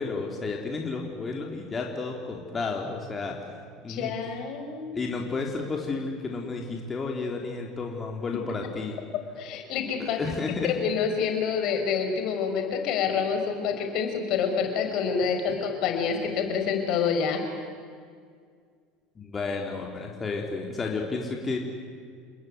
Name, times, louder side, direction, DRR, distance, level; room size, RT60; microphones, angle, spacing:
voice 1, 0.0-3.4 3.8-4.1 4.9-9.0 10.0-10.7 15.5-15.6 19.2-21.6, left 4 dB, 25° left, 0 dB, 4.0 m, -32 dB
voice 2, 3.9-4.9 9.4-10.2 10.6-17.4, left 6 dB, 55° left, 5 dB, 5.3 m, -27 dB
29.0 x 20.5 x 9.6 m, 2.1 s
hypercardioid pair, 75°, 0 cm